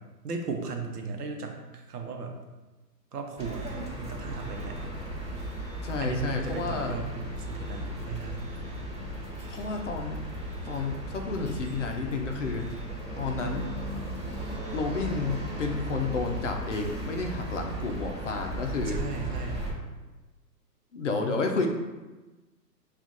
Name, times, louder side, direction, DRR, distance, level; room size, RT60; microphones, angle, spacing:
voice 1, 0.2-2.3 3.1-3.7 4.0-4.8 6.0-8.5 18.9-19.7, right 4 dB, 65° right, 3 dB, 0.8 m, -36 dB
sound 1, 3.4-19.7, right 1 dB, 25° right, 1.4 m, -36 dB
voice 2, 5.8-7.0 9.5-10.2 10.6-12.6 13.2-13.7 14.7-19.0 20.9-21.7, left 4 dB, 45° left, 3 dB, 0.6 m, -31 dB
5.7 x 2.5 x 2.5 m, 1.2 s
figure-of-eight pair, 125°, 50 cm